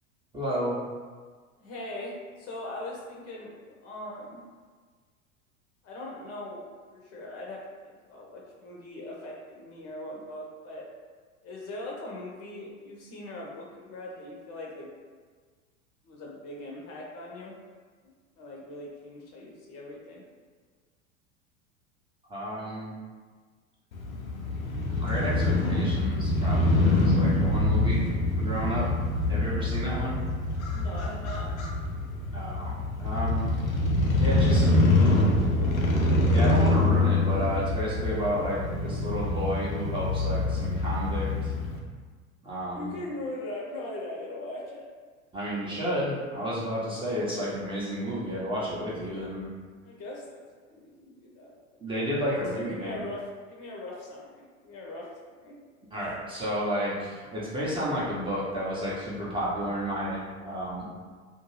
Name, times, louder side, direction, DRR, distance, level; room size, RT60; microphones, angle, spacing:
voice 1, 0.3-0.8 22.3-23.0 24.9-28.0 28.4-28.9 29.3-30.2 32.3-33.4 34.2-34.8 36.3-41.5 42.4-42.9 45.3-49.5 51.8-53.0 55.9-60.9, equal, 15° right, -8 dB, 0.6 m, -31 dB
voice 2, 1.6-3.5 3.8-4.4 5.8-6.6 6.9-10.8 11.4-14.9 16.0-17.5 18.0-20.2 30.7-31.5 34.4-35.9 42.7-44.9 46.3-46.6 49.8-50.4 50.7-51.5 52.4-55.1 55.4-55.6, left 1 dB, 35° left, -3 dB, 0.6 m, -40 dB
Crow / Motorcycle, 23.9-41.8, left 2 dB, 80° left, 0.6 m, -25 dB
2.5 x 2.3 x 3.1 m, 1.5 s
figure-of-eight pair, 85°, 41 cm